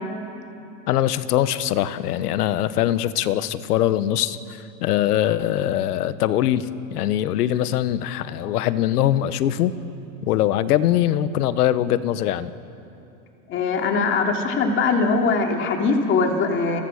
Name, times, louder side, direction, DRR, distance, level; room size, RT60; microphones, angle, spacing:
voice 1, 0.9-9.7 10.2-12.5, left 12 dB, 75° left, 14 dB, 1.3 m, -22 dB
voice 2, 13.5-16.8, left 4 dB, 25° left, 2 dB, 2.7 m, -21 dB
29.5 x 23.0 x 6.5 m, 2.8 s
supercardioid pair, 160°, 46 cm